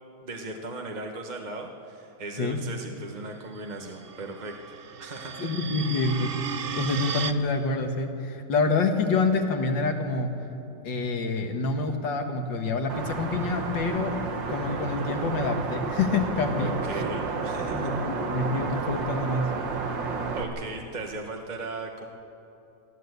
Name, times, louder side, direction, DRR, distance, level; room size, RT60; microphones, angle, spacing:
voice 1, 0.2-5.5 16.6-17.9 20.3-22.1, right 2 dB, 30° right, 2 dB, 1.1 m, -38 dB
sound 1, 3.7-7.3, right 7 dB, 55° right, 0.6 m, -35 dB
voice 2, 5.4-10.3 10.8-14.2 14.5-17.0 17.7-19.5, left 3 dB, 90° left, 4 dB, 2.3 m, -27 dB
sound 2, 12.9-20.4, right 4 dB, 90° right, 2.2 m, -31 dB
22.5 x 14.5 x 8.1 m, 2.8 s
omnidirectional pair, 2.0 m